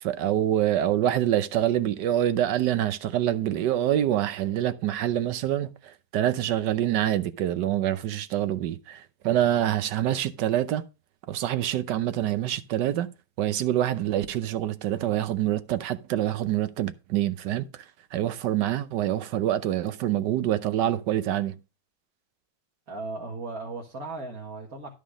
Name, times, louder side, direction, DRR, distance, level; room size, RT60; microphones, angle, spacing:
voice 1, 0.0-10.8 11.3-13.1 13.4-17.8 18.1-21.6, right 12 dB, 80° right, 1.4 m, -26 dB
voice 2, 22.9-24.9, right 3 dB, 60° right, 1.9 m, -36 dB
11.5 x 5.1 x 5.0 m
omnidirectional pair, 1.8 m